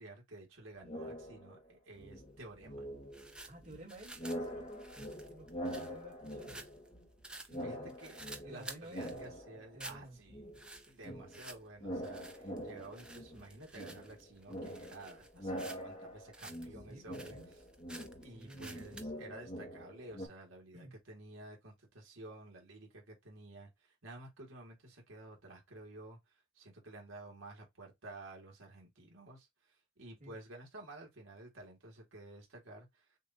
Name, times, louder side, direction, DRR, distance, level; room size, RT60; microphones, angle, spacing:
voice 1, 0.0-2.9 7.6-10.5 10.9-17.4 18.2-26.2 26.6-33.0, right 2 dB, 65° right, 2.0 m, -52 dB
sound 1, 0.8-1.7 2.0-7.2 7.5-10.0 10.3-20.3, equal, 30° left, 1.2 m, -45 dB
sound 2, 1.9-19.1, right 2 dB, 5° right, 0.5 m, -53 dB
voice 2, 3.5-6.6 7.5-8.0 8.4-10.2 11.0-11.2 16.9-17.5 18.3-18.6 20.7-21.0 30.2-30.4, right 1 dB, 35° right, 2.1 m, -53 dB
6.5 x 2.7 x 2.7 m
head